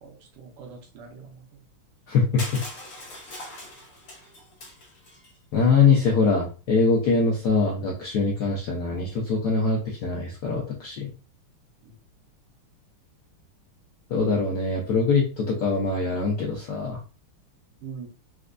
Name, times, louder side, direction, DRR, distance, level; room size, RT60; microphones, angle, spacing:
voice 1, 0.0-1.6 11.8-11.9 17.8-18.1, right 6 dB, 85° right, 2 dB, 1.7 m, -43 dB
voice 2, 2.1-2.6 5.5-11.1 14.1-17.0, left 4 dB, 70° left, -2 dB, 0.9 m, -23 dB
Crushing, 2.4-5.3, left 1 dB, 50° left, 1.2 m, -41 dB
4.3 x 2.2 x 2.4 m, 0.35 s
omnidirectional pair, 2.4 m